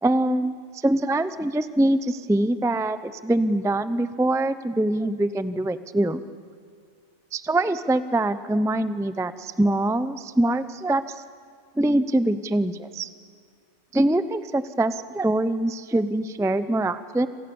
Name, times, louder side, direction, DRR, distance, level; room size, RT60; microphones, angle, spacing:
voice 1, 0.0-0.5 0.8-6.2 7.3-11.0 11.8-13.1 13.9-17.3, right 1 dB, 5° right, 13 dB, 0.6 m, -23 dB
29.0 x 27.5 x 7.1 m, 2.2 s
omnidirectional pair, 1.2 m